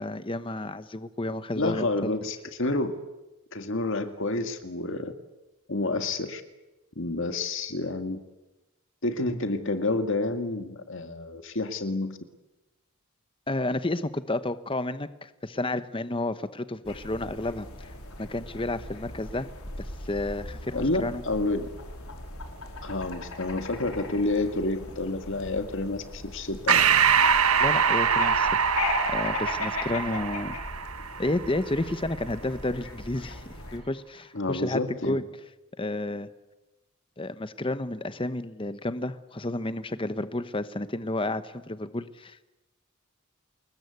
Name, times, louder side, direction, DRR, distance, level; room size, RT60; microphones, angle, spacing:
voice 1, 0.0-2.1 13.5-17.7 18.2-19.5 19.8-21.2 27.6-28.6 29.1-30.6 31.2-35.2 35.8-36.3 37.2-42.4, left 2 dB, 25° left, 12 dB, 1.0 m, -31 dB
voice 2, 1.6-3.0 3.5-5.1 5.7-6.4 7.0-8.2 9.0-12.2 20.7-21.7 22.8-26.9 34.3-35.2, left 2 dB, 55° left, 8 dB, 2.0 m, -29 dB
sound 1, 16.8-33.8, left 2 dB, 75° left, 4.7 m, -38 dB
Breathing, 26.7-31.6, right 7 dB, 75° right, 1.4 m, -23 dB
29.5 x 20.5 x 8.3 m, 1.0 s
head